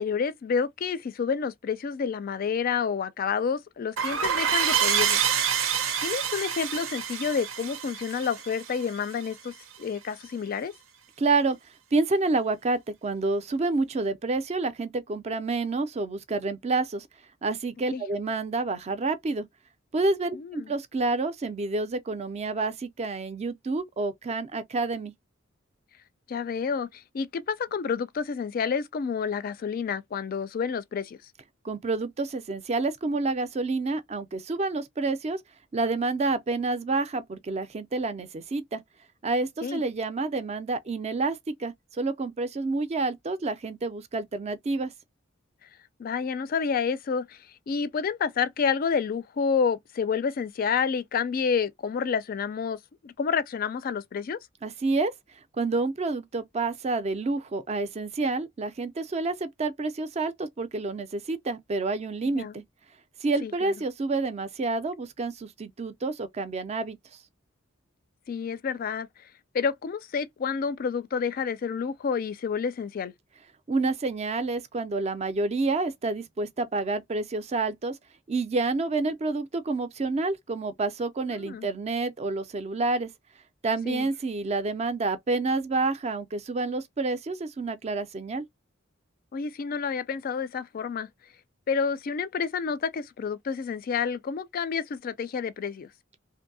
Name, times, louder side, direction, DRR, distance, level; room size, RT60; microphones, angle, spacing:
voice 1, 0.0-5.2 6.0-10.7 17.9-18.0 20.3-20.7 26.3-31.2 39.6-39.8 45.6-45.7 46.0-47.4 47.7-52.8 53.0-54.4 62.3-62.6 63.4-63.7 68.3-69.3 69.5-73.1 81.3-81.7 83.8-84.1 89.3-91.1 91.7-95.9, left 6 dB, 45° left, 0.3 m, -29 dB
sound 1, 4.0-9.3, right 8 dB, 85° right, 0.7 m, -27 dB
voice 2, 11.2-11.6 11.9-17.1 17.4-19.5 19.9-25.1 31.6-35.4 35.7-38.8 39.2-44.9 54.6-55.1 55.6-62.6 63.2-67.0 73.7-78.0 78.3-83.1 83.6-88.5, right 3 dB, 35° right, 0.4 m, -28 dB
2.6 x 2.6 x 2.6 m
head